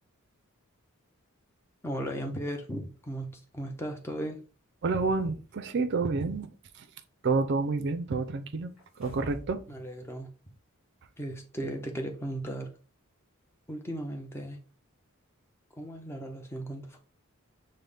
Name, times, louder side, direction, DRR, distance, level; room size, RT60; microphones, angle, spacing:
voice 1, 1.8-4.4 9.7-10.3 11.2-12.7 13.7-14.6 15.8-17.0, right 1 dB, 10° left, 0.5 m, -36 dB
voice 2, 4.8-6.9 7.2-8.7 9.0-9.6, right 4 dB, 50° right, 0.4 m, -29 dB
sound 1, 8.8-9.6 10.0-10.1, right 1 dB, 5° right, 1.8 m, -45 dB
5.4 x 2.1 x 3.4 m
head